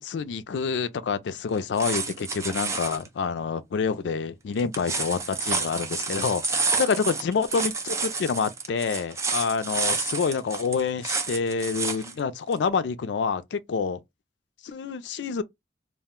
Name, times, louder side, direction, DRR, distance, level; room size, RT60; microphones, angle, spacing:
voice 1, 0.0-14.0 14.6-15.4, left 5 dB, 80° left, 0.4 m, -27 dB
sound 1, 1.5-3.1 4.6-12.1 12.5-12.6, right 4 dB, 15° right, 0.4 m, -29 dB
2.4 x 2.1 x 3.5 m
head